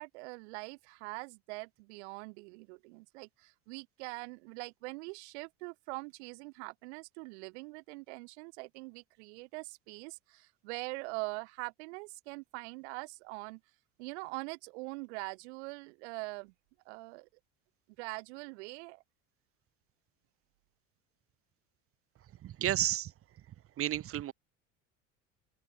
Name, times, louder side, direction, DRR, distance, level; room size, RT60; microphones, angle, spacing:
voice 1, 0.0-13.6 14.0-16.5 16.9-17.3 18.0-19.0, right 27 dB, 85° right, 2.4 m, -43 dB
voice 2, 22.4-23.1 23.8-24.3, right 12 dB, 40° right, 2.3 m, -31 dB
open air
cardioid pair, 130°, 33 cm